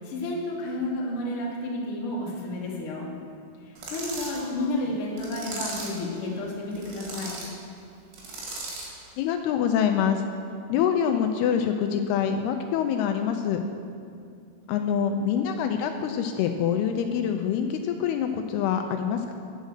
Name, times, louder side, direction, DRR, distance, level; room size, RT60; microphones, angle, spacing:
voice 1, 0.0-3.1 3.6-7.4, left 1 dB, 55° left, -4 dB, 1.6 m, -31 dB
sound 1, 3.8-4.4 5.2-6.0 6.7-7.5 8.1-9.0, right 2 dB, 90° right, 4.1 m, -37 dB
voice 2, 4.4-4.7 9.2-10.2 10.7-13.6 14.7-19.3, left 8 dB, 85° left, 6 dB, 2.4 m, -25 dB
9.3 x 6.5 x 6.4 m, 2.4 s
omnidirectional pair, 4.7 m